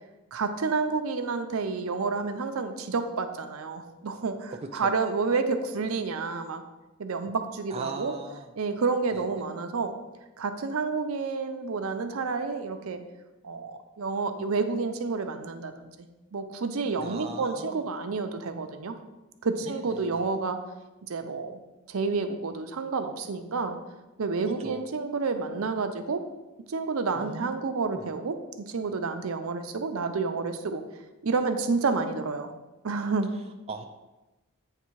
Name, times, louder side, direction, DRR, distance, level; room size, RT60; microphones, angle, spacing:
voice 1, 0.3-6.6 7.0-8.1 8.6-9.9 10.4-13.0 13.4-15.9 16.3-19.0 19.4-20.6 21.0-21.6 21.9-23.8 24.2-26.2 26.7-30.8 31.2-32.5 32.8-33.3, right 4 dB, 75° right, 7 dB, 0.6 m, -29 dB
voice 2, 4.5-4.9 7.7-8.5 9.1-9.5 17.0-17.9 19.6-20.4 24.5-24.8 27.1-28.0 33.3-33.9, right 3 dB, 30° right, 4 dB, 0.3 m, -40 dB
8.4 x 3.3 x 4.6 m, 1.1 s
head